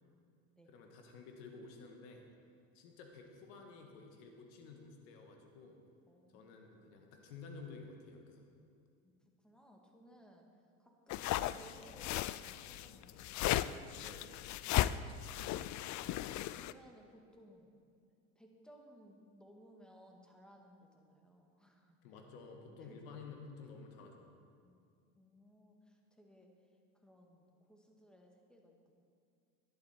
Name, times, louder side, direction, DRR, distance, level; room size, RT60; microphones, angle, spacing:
voice 1, 0.0-0.8 6.1-6.6 9.0-10.5 10.8-13.5 13.9-14.0 14.6-15.3 16.6-17.7 18.4-22.0 22.8-23.0 24.6-24.8 25.1-26.5 26.9-29.1, equal, ahead, 1 dB, 1.9 m, -61 dB
voice 2, 0.7-2.3 2.7-5.8 6.3-8.4 14.0-14.3 22.0-24.3, left 4 dB, 80° left, 3 dB, 1.8 m, -52 dB
sound 1, 11.1-16.7, left 14 dB, 45° left, 0.4 m, -36 dB
11.5 x 11.0 x 4.4 m, 2.4 s
hypercardioid pair, 80°, 40 cm